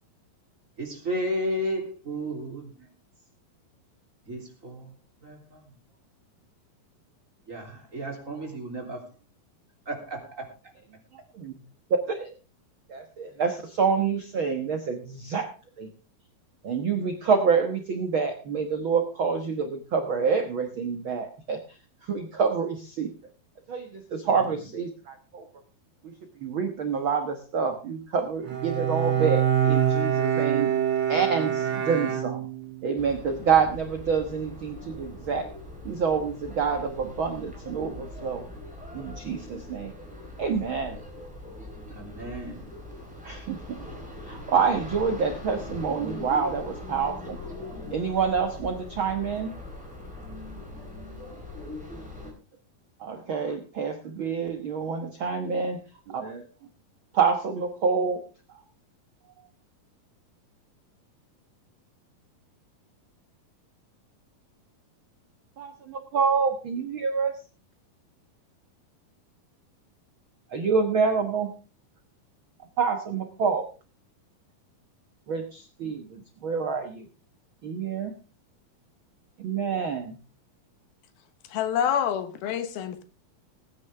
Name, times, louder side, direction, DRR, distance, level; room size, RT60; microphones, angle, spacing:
voice 1, 0.8-2.9 4.3-4.9 5.2-5.6 7.5-9.1 9.8-10.5 24.2-24.5 41.9-42.8, equal, 20° right, 1 dB, 3.3 m, -33 dB
voice 2, 12.9-15.5 15.8-15.9 16.6-23.1 23.7-25.4 26.0-26.1 26.4-30.7 31.1-32.5 32.8-35.5 35.8-38.4 38.9-39.9 40.4-41.0 43.2-43.9 44.2-47.4 47.9-49.5 53.0-55.8 56.1-56.5 57.1-58.2 65.6-67.3 70.5-71.5 72.8-73.6 75.3-77.1 77.6-78.1 79.4-80.2, right 5 dB, 65° right, 6 dB, 1.3 m, -27 dB
Bowed string instrument, 28.4-32.8, right 9 dB, 40° right, 2.6 m, -25 dB
sound 1, 32.9-52.3, left 1 dB, ahead, 3.7 m, -41 dB
voice 3, 81.5-83.0, left 9 dB, 85° left, 10 dB, 3.1 m, -27 dB
20.0 x 9.8 x 3.5 m, 0.33 s
omnidirectional pair, 4.2 m